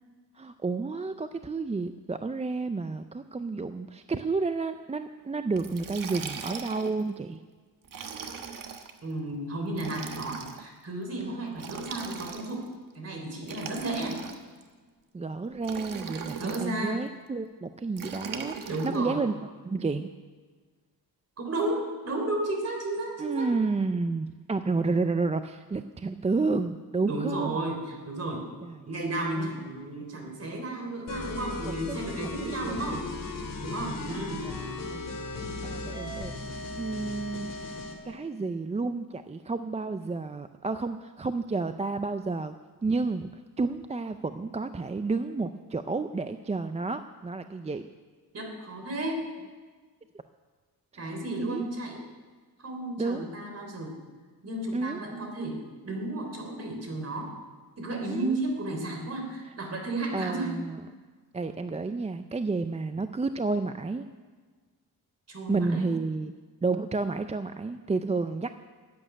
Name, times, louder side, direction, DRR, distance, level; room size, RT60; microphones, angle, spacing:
voice 1, 0.4-7.4 11.2-11.7 15.1-20.1 23.2-27.6 28.6-28.8 29.4-29.5 31.6-32.0 32.4-33.0 34.4-35.1 35.6-36.3 36.8-37.6 38.0-42.5 42.8-43.3 43.6-47.8 50.9-51.0 51.4-51.6 53.0-53.3 54.7-55.0 58.1-58.3 60.1-60.8 61.3-64.1 65.5-66.3 66.6-68.5, right 3 dB, 20° right, 9 dB, 0.4 m, -31 dB
Liquid, 5.6-7.0 7.8-8.9 9.7-10.6 11.6-12.7 13.4-14.6 15.6-16.7 18.0-19.0, right 6 dB, 55° right, 1.3 m, -39 dB
voice 2, 9.0-12.7 12.9-14.2 16.4-17.0 18.7-19.2 21.4-23.5 27.1-28.5 28.9-33.1 33.6-34.5 48.3-49.2 51.0-52.0 52.6-54.0 54.4-57.3 57.8-60.5 60.8-60.9 65.3-65.9, right 2 dB, 40° right, 3 dB, 3.3 m, -33 dB
sound 1, 31.1-38.0, left 3 dB, 60° left, 2.5 m, -36 dB
14.0 x 8.8 x 10.0 m, 1.5 s
wide cardioid pair, 140°, 38 cm